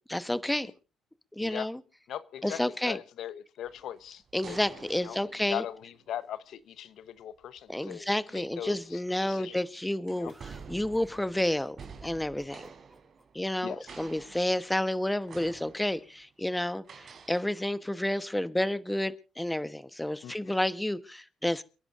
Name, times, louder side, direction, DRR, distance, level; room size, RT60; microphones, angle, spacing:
voice 1, 0.1-0.7 1.4-1.8 2.4-3.0 4.3-5.6 7.7-10.3 10.7-11.8 12.0-12.7 13.3-21.6, left 1 dB, 5° left, 1.1 m, -30 dB
voice 2, 2.1-4.6 5.0-8.1 8.3-9.0 9.3-9.6 10.1-10.3 13.6-14.0 20.2-20.5, left 10 dB, 75° left, 1.0 m, -40 dB
sound 1, 3.6-6.1 7.6-7.8 8.5-9.5 10.1-13.6 13.9-14.9 15.3-16.2 16.8-17.4, right 5 dB, 50° right, 4.2 m, -49 dB
sound 2, 10.3-13.2, right 1 dB, 10° right, 3.7 m, -57 dB
29.5 x 10.5 x 2.6 m
cardioid pair, 90°, 0 cm